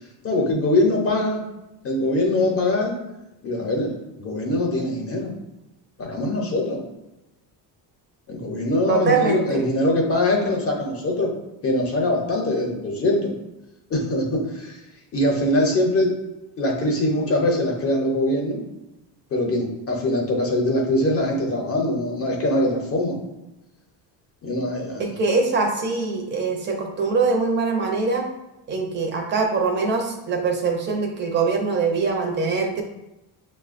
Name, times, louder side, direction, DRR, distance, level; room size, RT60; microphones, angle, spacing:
voice 1, 0.2-1.4 1.8-3.0 3.4-5.3 6.0-6.8 8.3-11.3 11.6-13.3 13.9-14.8 15.1-16.2 16.6-18.6 19.3-23.2 24.4-25.0, left 1 dB, 35° left, 0 dB, 0.6 m, -22 dB
voice 2, 8.9-9.6 25.0-28.2 28.7-32.8, right 4 dB, 25° right, 2 dB, 0.5 m, -23 dB
6.1 x 2.1 x 2.4 m, 0.95 s
cardioid pair, 160°, 43 cm